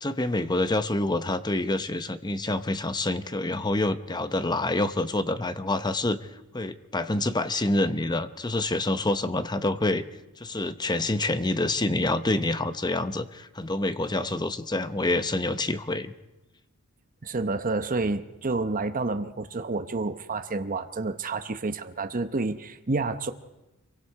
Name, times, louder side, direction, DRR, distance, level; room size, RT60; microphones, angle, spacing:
voice 1, 0.0-6.2 6.5-10.0 10.4-16.1, left 2 dB, 20° left, 11 dB, 0.9 m, -27 dB
voice 2, 17.2-23.3, right 3 dB, 40° right, 8 dB, 0.9 m, -29 dB
27.0 x 23.5 x 4.8 m, 1.0 s
head